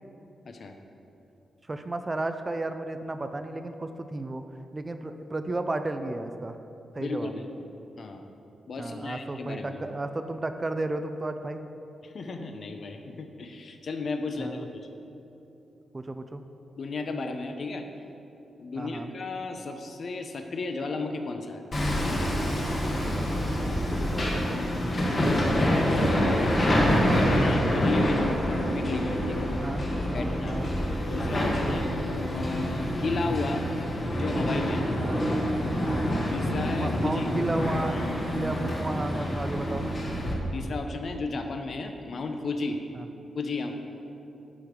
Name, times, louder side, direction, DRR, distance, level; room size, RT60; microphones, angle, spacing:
voice 1, 0.4-0.8 7.0-7.4 8.0-8.3 8.7-9.8 12.0-14.9 16.8-17.9 18.6-21.6 25.1-29.5 30.1-30.6 31.1-31.9 32.3-33.7 34.2-34.9 36.3-37.3 40.5-42.8 43.3-43.7, left 3 dB, 50° left, 5 dB, 0.7 m, -34 dB
voice 2, 1.7-4.4 4.7-6.6 7.0-7.3 8.8-11.6 14.4-14.6 15.9-16.4 18.8-19.1 22.9-24.6 29.6-29.9 30.1-30.7 31.6-31.9 35.0-35.2 35.8-36.0 36.6-38.0 38.3-39.9, right 2 dB, 20° right, 8 dB, 0.4 m, -33 dB
Hammer, 21.7-40.3, equal, 35° left, 1.5 m, -26 dB
10.5 x 5.0 x 5.2 m, 3.0 s
wide cardioid pair, 135°, 0 cm